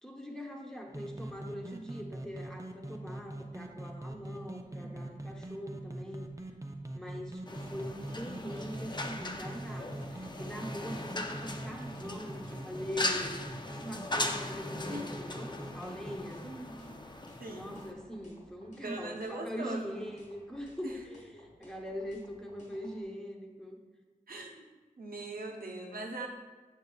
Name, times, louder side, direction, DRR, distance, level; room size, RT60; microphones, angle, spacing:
voice 1, 0.0-6.3 6.9-16.4 17.5-23.8, equal, 5° left, 0 dB, 1.0 m, -42 dB
sound 1, 0.9-16.2, right 1 dB, 20° right, 0.6 m, -43 dB
voice 2, 4.8-5.3 14.9-15.0 16.4-17.0 17.4-17.7 18.8-20.0 20.8-20.9 24.3-24.6 25.0-26.3, right 2 dB, 80° right, 0 dB, 0.8 m, -41 dB
sound 2, 7.5-17.9, left 2 dB, 30° left, 0.5 m, -39 dB
sound 3, 7.6-23.0, equal, 55° left, 1.2 m, -58 dB
6.6 x 6.2 x 2.3 m, 1.3 s
cardioid pair, 40°, 15 cm